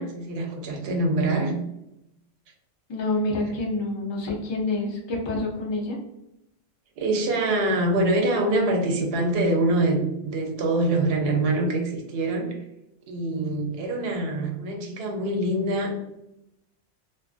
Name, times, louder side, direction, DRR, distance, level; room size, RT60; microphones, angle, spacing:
voice 1, 0.0-1.5 7.0-12.5 13.1-15.9, right 2 dB, 65° right, 2 dB, 0.8 m, -24 dB
voice 2, 2.9-6.0, left 2 dB, 40° left, -2 dB, 0.4 m, -27 dB
2.4 x 2.3 x 2.4 m, 0.86 s
omnidirectional pair, 1.2 m